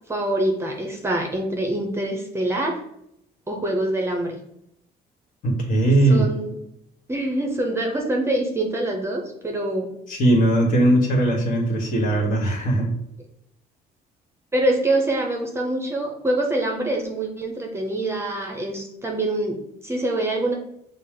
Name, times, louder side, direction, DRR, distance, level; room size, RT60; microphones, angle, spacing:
voice 1, 0.1-2.8 3.5-4.4 6.1-6.6 7.1-10.0 14.5-20.5, right 1 dB, 15° right, 1 dB, 0.7 m, -25 dB
voice 2, 5.4-6.3 10.1-12.9, right 1 dB, 55° left, 0 dB, 1.4 m, -19 dB
5.9 x 2.0 x 3.7 m, 0.77 s
cardioid pair, 110°, 17 cm